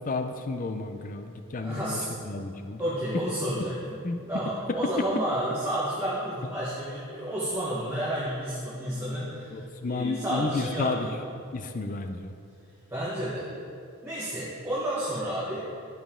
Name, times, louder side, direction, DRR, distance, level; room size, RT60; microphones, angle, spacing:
voice 1, 0.1-2.0 2.3-2.8 4.0-4.2 4.7-4.8 9.5-11.1 11.5-12.3, left 3 dB, 40° left, 7 dB, 0.4 m, -31 dB
voice 2, 1.6-2.1 2.8-4.0 4.3-11.2 12.9-13.5 14.0-15.6, right 1 dB, 10° right, -9 dB, 1.2 m, -31 dB
12.0 x 5.3 x 3.7 m, 2.5 s
head